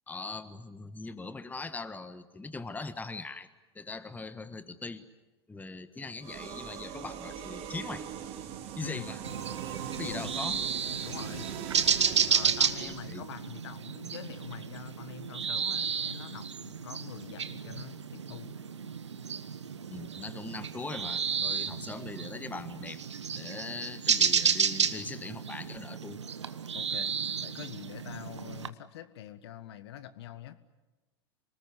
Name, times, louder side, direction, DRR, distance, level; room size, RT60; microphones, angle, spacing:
voice 1, 0.1-3.5 3.7-5.0 5.5-8.0 8.8-9.2 9.8-10.6 10.9-11.0 12.8-13.2 19.9-23.0 23.3-26.2, left 3 dB, 10° left, 11 dB, 1.4 m, -41 dB
sound 1, 6.2-13.1, right 9 dB, 45° right, 2.9 m, -41 dB
sound 2, 9.2-28.7, right 7 dB, 85° right, 1.2 m, -32 dB
voice 2, 10.0-10.3 11.0-11.5 12.3-18.6 21.7-21.9 26.7-27.1 27.4-30.6, left 11 dB, 65° left, 12 dB, 1.5 m, -45 dB
27.5 x 20.0 x 9.8 m, 1.2 s
hypercardioid pair, 90°, 15 cm